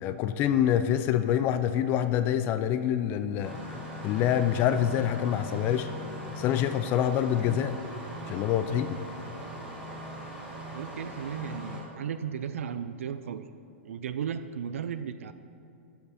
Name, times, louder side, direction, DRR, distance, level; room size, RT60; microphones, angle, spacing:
voice 1, 0.0-3.5 4.0-5.9 6.4-7.8 8.3-9.0, left 10 dB, 30° left, 11 dB, 0.4 m, -26 dB
Engine starting, 3.4-11.8, equal, 10° right, 1.7 m, -40 dB
voice 2, 10.7-13.5 13.8-15.3, right 8 dB, 85° right, 11 dB, 0.4 m, -35 dB
13.0 x 5.8 x 4.1 m, 2.8 s
hypercardioid pair, 150°, 7 cm